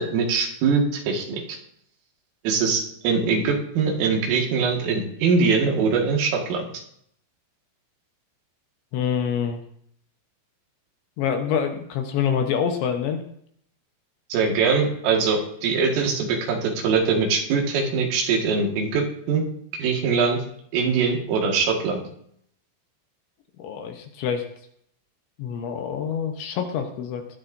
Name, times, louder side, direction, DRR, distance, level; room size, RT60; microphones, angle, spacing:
voice 1, 0.0-1.4 2.4-6.6 14.3-19.4 19.8-20.4 20.7-22.0, right 5 dB, 75° right, 1 dB, 4.5 m, -22 dB
voice 2, 8.9-9.6 11.2-13.2 23.6-24.4 25.4-27.3, left 7 dB, 75° left, 4 dB, 3.0 m, -26 dB
20.0 x 13.0 x 2.7 m, 0.69 s
omnidirectional pair, 5.9 m